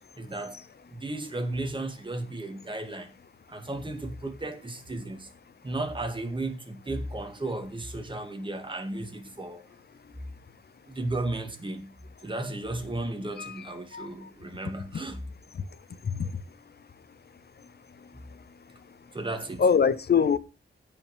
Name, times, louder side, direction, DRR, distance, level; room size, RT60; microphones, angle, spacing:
voice 1, 0.2-0.6 0.9-3.1 3.5-5.3 5.6-9.6 10.9-11.9 12.2-15.2 19.1-19.6, right 2 dB, 25° right, 2.0 m, -34 dB
voice 2, 13.4-14.3 16.0-16.3 19.6-20.4, left 6 dB, 50° left, 0.8 m, -24 dB
16.0 x 5.6 x 3.4 m
wide cardioid pair, 120°, 21 cm